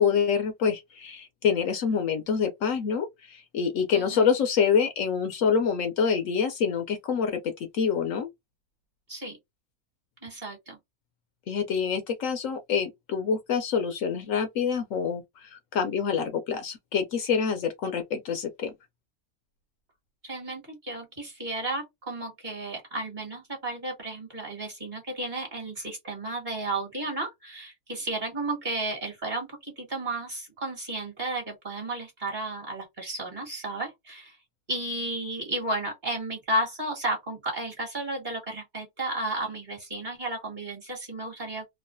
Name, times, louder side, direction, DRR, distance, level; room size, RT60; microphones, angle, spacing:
voice 1, 0.0-8.3 11.5-18.7, left 6 dB, 70° left, 0.9 m, -26 dB
voice 2, 3.9-4.2 9.1-9.4 10.2-10.8 20.2-34.4 34.7-41.7, right 2 dB, 35° right, 1.5 m, -33 dB
3.0 x 2.3 x 2.5 m
omnidirectional pair, 1.5 m